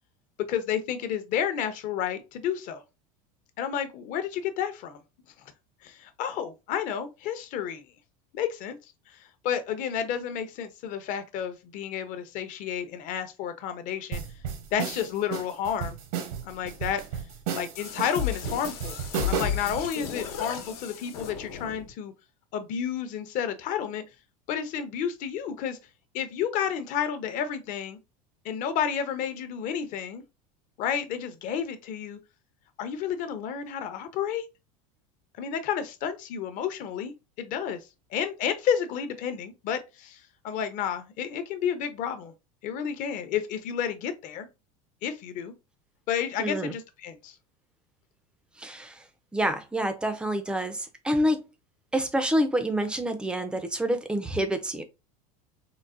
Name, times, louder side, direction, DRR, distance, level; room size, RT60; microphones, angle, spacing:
voice 1, 0.4-2.8 3.6-5.0 5.8-7.8 8.3-8.8 9.4-14.2 14.7-16.0 16.4-17.0 17.5-19.0 19.2-22.1 22.5-24.0 24.5-25.8 26.1-28.0 28.4-30.2 30.8-32.2 32.8-34.5 35.4-37.1 37.4-37.8 38.1-40.2 40.4-42.3 42.6-44.5 45.0-45.5 46.1-47.3, left 8 dB, 45° left, 0.6 m, -31 dB
sound 1, 14.1-19.7, right 7 dB, 70° right, 0.8 m, -33 dB
sound 2, 17.7-21.9, left 8 dB, 90° left, 1.0 m, -34 dB
voice 2, 46.4-46.8 48.6-49.0 49.3-51.5 51.9-54.8, equal, 5° right, 0.3 m, -27 dB
3.9 x 2.1 x 2.4 m
supercardioid pair, 145°, 19 cm